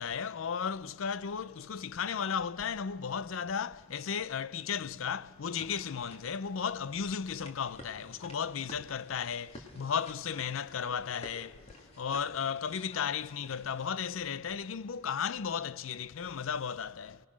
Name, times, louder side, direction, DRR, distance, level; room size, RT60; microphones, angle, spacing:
voice 1, 0.0-17.2, left 7 dB, 75° left, 0.5 m, -35 dB
sound 1, 5.5-13.9, left 1 dB, 30° left, 2.5 m, -53 dB
29.0 x 19.0 x 6.2 m
head